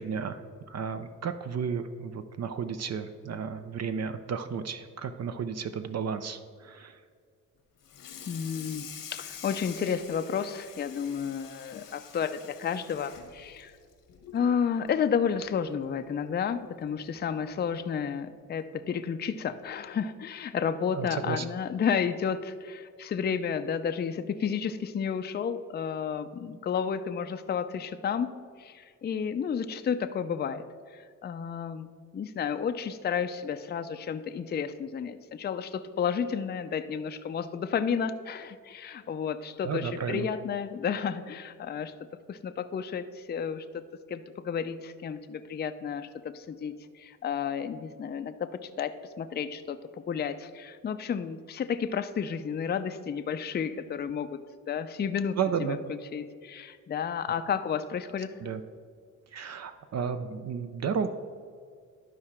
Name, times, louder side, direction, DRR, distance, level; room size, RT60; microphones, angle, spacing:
voice 1, 0.0-7.0 20.9-21.5 39.6-40.3 55.4-55.8 58.4-58.6 59.3-61.1, right 6 dB, 50° right, 9 dB, 0.6 m, -33 dB
Water tap faucet / Sink (filling or washing), 7.8-14.5 14.9-15.1 15.5-15.6 16.0-16.1 17.2-17.3 17.7-18.0, left 8 dB, 90° left, 1.2 m, -46 dB
voice 2, 8.3-13.7 14.3-30.6 30.9-41.9 42.3-43.8 44.1-49.8 50.1-55.4 55.7-58.3, left 7 dB, 30° left, 9 dB, 0.4 m, -32 dB
11.5 x 4.8 x 4.3 m, 2.1 s
cardioid pair, 85°, 33 cm